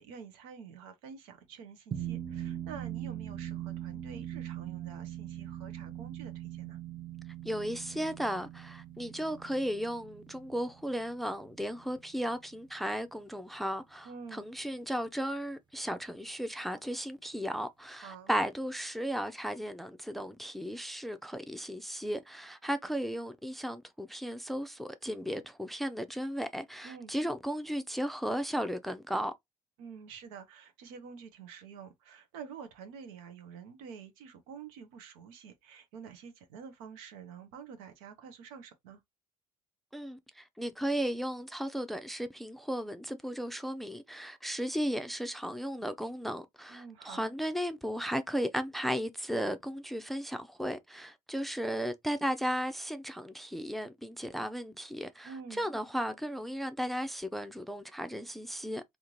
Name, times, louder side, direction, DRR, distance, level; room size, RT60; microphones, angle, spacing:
voice 1, 0.0-6.8 14.0-14.5 18.0-18.3 26.8-27.1 29.8-39.0 46.7-47.2 55.2-55.7, right 6 dB, 75° right, 0.8 m, -48 dB
sound 1, 1.9-12.6, right 11 dB, 25° right, 0.8 m, -41 dB
voice 2, 7.4-29.3 39.9-58.8, equal, ahead, 0.5 m, -35 dB
3.6 x 2.5 x 3.0 m
hypercardioid pair, 55°, 18 cm